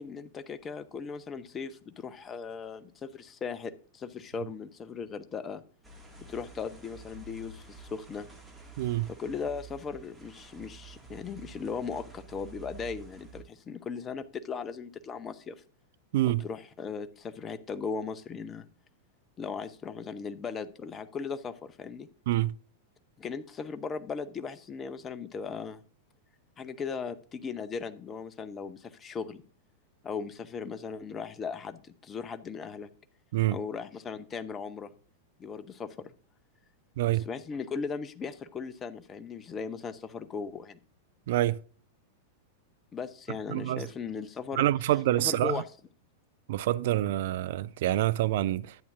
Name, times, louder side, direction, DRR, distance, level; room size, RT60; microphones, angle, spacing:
voice 1, 0.0-5.6 6.2-8.3 9.1-15.5 16.3-18.7 19.4-22.1 23.2-25.8 26.6-29.4 30.0-32.9 33.5-34.9 35.4-36.1 37.1-40.8 42.9-44.7 45.2-45.6, left 5 dB, 20° left, 0.6 m, -38 dB
sound 1, 5.8-13.4, right 5 dB, 5° right, 2.0 m, -49 dB
voice 2, 8.8-9.1 16.1-16.4 22.3-22.5 33.3-33.6 37.0-37.2 41.3-41.6 43.5-43.8 44.6-45.6 46.5-48.8, right 14 dB, 55° right, 0.3 m, -26 dB
11.0 x 8.4 x 2.5 m
figure-of-eight pair, 95°, 0 cm